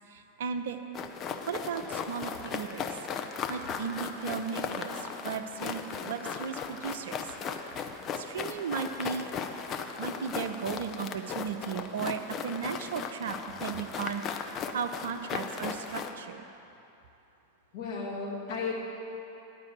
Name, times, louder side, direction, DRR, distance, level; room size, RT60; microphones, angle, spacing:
voice 1, 0.1-0.8 1.5-2.8 3.5-7.3 8.2-9.3 10.0-14.4 14.7-16.4, right 6 dB, 60° right, 8 dB, 0.5 m, -36 dB
sound 1, 0.9-16.1, left 6 dB, 30° left, 0.5 m, -37 dB
voice 2, 17.7-18.7, left 5 dB, 50° left, -3 dB, 1.9 m, -34 dB
9.5 x 5.3 x 7.7 m, 2.9 s
figure-of-eight pair, 90°, 0 cm